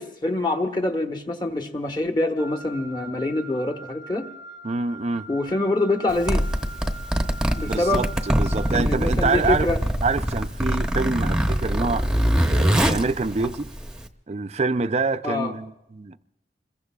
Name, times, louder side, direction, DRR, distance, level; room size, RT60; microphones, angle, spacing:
voice 1, 0.0-4.3 5.3-6.5 7.6-8.1 8.7-9.8 15.2-15.5, left 2 dB, 25° left, 1.2 m, -25 dB
Wind instrument woodwind instrument, 2.4-8.8, right 2 dB, 80° left, 1.1 m, -42 dB
voice 2, 4.6-5.3 7.6-9.7 10.0-12.1 12.5-13.7 14.3-16.2, right 3 dB, 35° right, 0.5 m, -26 dB
Zipper (clothing), 6.1-14.1, equal, 5° right, 0.8 m, -23 dB
26.5 x 22.0 x 2.3 m
head